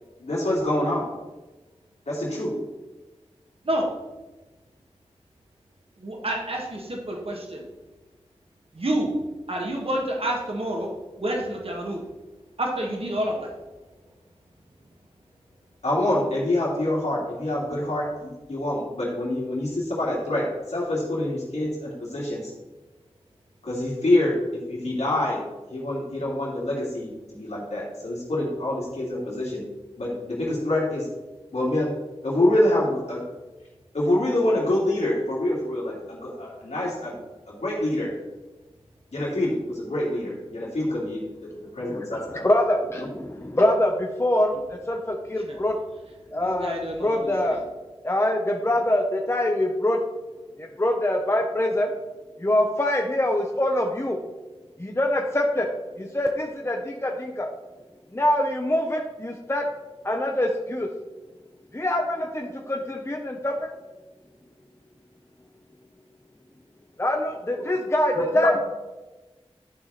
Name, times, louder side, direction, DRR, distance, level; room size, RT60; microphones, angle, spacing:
voice 1, 0.2-1.1 2.1-2.6 15.8-22.5 23.6-25.4 25.7-29.6 30.0-31.1 31.5-31.9 32.2-33.2 33.9-37.2 37.5-38.1 39.1-42.5 43.0-43.1 68.4-68.6, left 1 dB, 85° left, -6 dB, 2.6 m, -26 dB
voice 2, 6.0-7.6 8.7-9.1 9.5-10.9 11.2-12.0 12.6-13.5 45.5-45.6 46.3-47.6, right 1 dB, 60° right, -1 dB, 1.8 m, -28 dB
voice 3, 41.8-45.8 46.3-46.7 47.0-47.6 48.0-50.0 50.6-51.9 52.4-54.2 54.8-55.7 56.0-57.5 58.1-59.7 60.0-60.9 61.7-63.5 67.0-68.6, left 1 dB, 25° left, 1 dB, 1.0 m, -24 dB
11.5 x 4.8 x 4.2 m, 1.1 s
wide cardioid pair, 50°, 11 cm